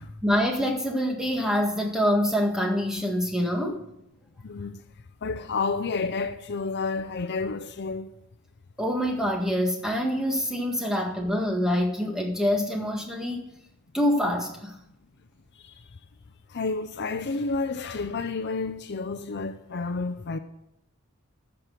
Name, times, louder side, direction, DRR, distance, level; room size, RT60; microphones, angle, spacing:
voice 1, 0.2-3.8 8.8-13.5 13.9-14.8, equal, 5° right, 1.7 m, -25 dB
voice 2, 4.4-4.8 5.2-8.1 15.6-15.7 16.5-20.4, left 4 dB, 55° left, 0.6 m, -30 dB
14.0 x 5.9 x 6.5 m
head